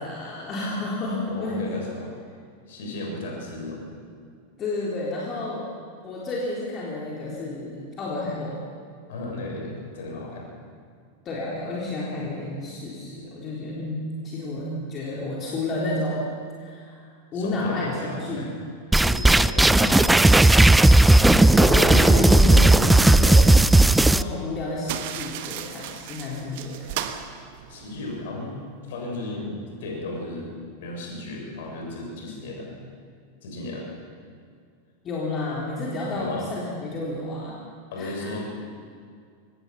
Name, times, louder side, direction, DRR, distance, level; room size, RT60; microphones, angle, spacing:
voice 1, 0.0-1.7 4.6-5.7 6.0-8.6 11.2-14.0 14.2-16.2 16.6-18.4 19.6-20.1 21.3-23.5 24.0-27.0 35.0-37.6 38.0-38.3, left 2 dB, 30° left, -5 dB, 4.0 m, -30 dB
voice 2, 1.2-2.2 2.7-3.8 9.1-10.5 17.3-18.5 19.0-20.3 27.7-28.6 28.9-30.5 30.8-32.8 33.4-33.9 36.1-36.5 37.9-38.5, left 2 dB, 55° left, -1 dB, 6.9 m, -35 dB
sound 1, 18.9-24.2, right 2 dB, 5° right, 0.5 m, -15 dB
sound 2, 24.8-28.2, right 11 dB, 50° right, 1.3 m, -35 dB
24.0 x 19.0 x 5.9 m, 2.2 s
figure-of-eight pair, 90°, 0 cm